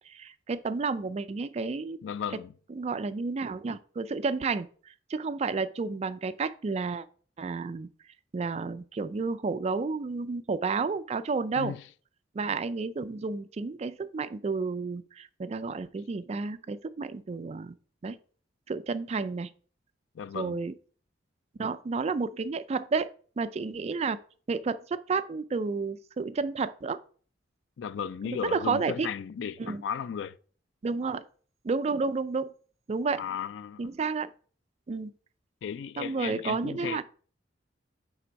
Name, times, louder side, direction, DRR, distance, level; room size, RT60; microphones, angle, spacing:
voice 1, 0.1-2.0 2.7-7.1 7.4-7.9 8.3-11.7 12.3-17.7 18.0-18.2 18.7-19.5 20.3-20.7 21.6-23.1 23.4-24.2 24.5-27.0 28.3-29.1 29.6-29.8 30.8-31.2 31.6-32.5 32.9-33.2 33.8-34.3 34.9-35.1 36.0-37.0, right 4 dB, 35° right, 0.3 m, -31 dB
voice 2, 2.0-2.5 11.6-11.8 20.1-20.6 27.8-30.4 33.1-33.8 35.6-37.0, left 7 dB, 70° left, 0.3 m, -35 dB
7.4 x 3.4 x 5.2 m
head